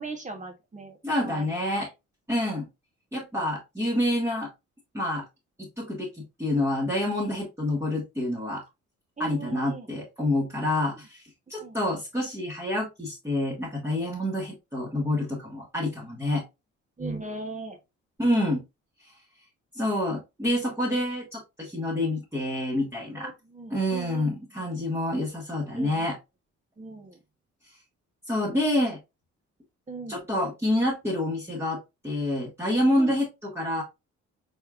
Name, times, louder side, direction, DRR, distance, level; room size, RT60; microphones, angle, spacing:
voice 1, 0.0-1.0 1.2-1.9 9.2-9.9 11.6-11.8 17.0-17.8 23.2-24.3 25.8-26.1 26.8-27.2 29.9-30.2 33.0-33.2, right 3 dB, 25° right, 1.1 m, -38 dB
voice 2, 1.0-1.9 2.3-2.7 3.1-4.5 4.9-5.2 5.6-8.6 9.2-11.2 11.5-16.4 18.2-18.6 19.7-23.3 23.7-26.2 28.3-29.0 30.1-33.8, left 1 dB, 10° right, 1.4 m, -27 dB
4.2 x 3.6 x 2.4 m
cardioid pair, 90°, 30 cm